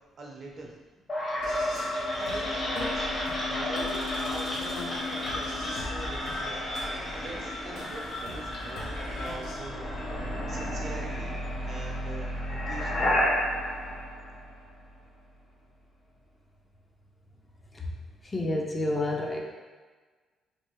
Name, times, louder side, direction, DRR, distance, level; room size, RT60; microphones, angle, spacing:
voice 1, 0.2-0.7 2.2-3.1 3.5-10.0 10.5-11.3 11.6-13.2, right 2 dB, 50° right, -1 dB, 0.7 m, -43 dB
sound 1, 1.1-15.0, equal, 40° left, 1.0 m, -32 dB
sound 2, 1.4-9.6, left 3 dB, 85° left, 0.7 m, -38 dB
voice 2, 18.3-19.4, left 1 dB, 25° left, -1 dB, 0.5 m, -28 dB
3.4 x 2.5 x 3.0 m, 1.4 s
cardioid pair, 90°, 0 cm